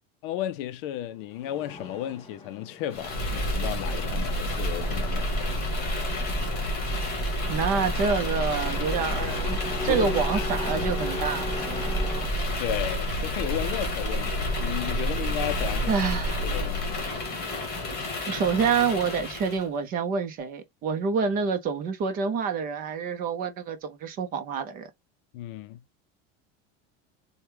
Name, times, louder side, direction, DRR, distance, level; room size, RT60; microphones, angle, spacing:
voice 1, 0.2-5.3 9.9-10.5 12.6-15.9 16.4-16.9 25.3-25.8, left 12 dB, 60° left, 0.5 m, -34 dB
Truck, 1.2-12.3, left 1 dB, 10° left, 2.2 m, -40 dB
sound 1, 2.9-19.6, left 1 dB, 30° left, 1.6 m, -29 dB
voice 2, 7.5-12.0 15.9-16.4 18.3-24.9, right 6 dB, 30° right, 0.5 m, -27 dB
4.3 x 2.2 x 3.3 m
cardioid pair, 180°, 31 cm